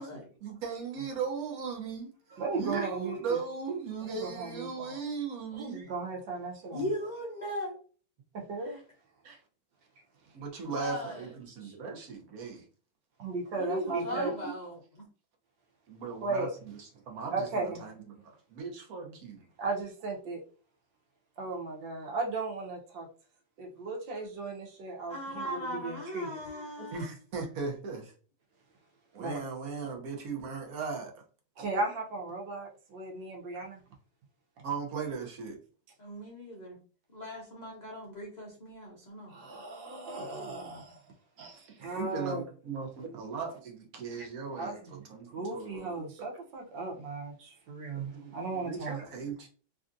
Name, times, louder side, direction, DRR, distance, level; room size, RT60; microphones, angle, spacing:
voice 1, 0.4-2.1 2.5-5.8 9.2-9.4 10.3-12.6 13.9-14.3 15.9-17.9 18.2-19.5 26.9-28.1 29.1-31.2 34.6-35.6 41.4-45.9 47.9-49.5, right 5 dB, 60° right, 1.1 m, -38 dB
voice 2, 2.3-3.4 4.0-5.0 5.5-6.8 8.3-8.8 13.2-14.3 16.2-16.5 17.3-17.8 19.6-20.4 21.4-23.1 23.6-26.6 29.2-29.4 31.6-33.8 39.3-41.0 41.8-42.4 44.2-44.3 44.6-44.8 45.3-49.0, right 3 dB, 80° right, 1.5 m, -36 dB
voice 3, 6.7-7.8 8.6-8.8 10.6-11.3 11.6-11.7 13.5-15.0 25.1-27.1 36.0-36.8 37.1-39.3, equal, 70° left, 0.4 m, -38 dB
3.4 x 2.6 x 2.5 m
omnidirectional pair, 2.0 m